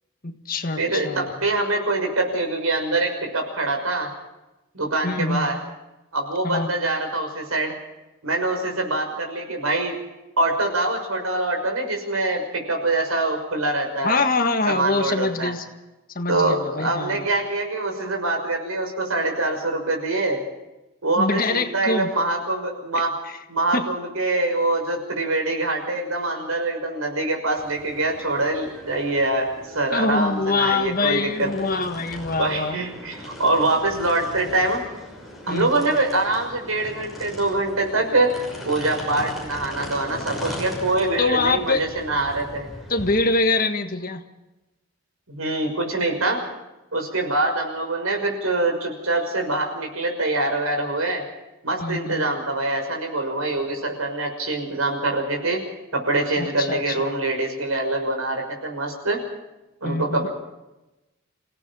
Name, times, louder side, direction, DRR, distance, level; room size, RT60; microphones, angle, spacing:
voice 1, 0.2-1.3 5.0-5.5 6.4-6.7 14.0-15.7 16.2-17.3 21.2-22.1 23.3-23.4 23.7-23.9 29.9-32.8 35.5-35.7 41.2-41.9 42.9-44.2 51.8-52.3 56.4-57.1 59.8-60.3, left 3 dB, 40° left, 7 dB, 1.6 m, -24 dB
voice 2, 0.8-4.1 4.7-5.6 6.1-7.8 8.2-10.0 10.4-14.2 14.7-15.5 16.3-20.4 21.0-23.1 23.5-29.5 29.7-31.5 32.4-34.8 35.5-38.3 38.6-42.7 45.3-46.4 46.9-51.3 51.6-55.6 55.9-59.2 59.8-60.3, right 2 dB, 85° right, 3 dB, 6.0 m, -24 dB
sound 1, 27.6-43.3, left 1 dB, ahead, 6.1 m, -39 dB
28.0 x 17.5 x 5.6 m, 1.0 s
head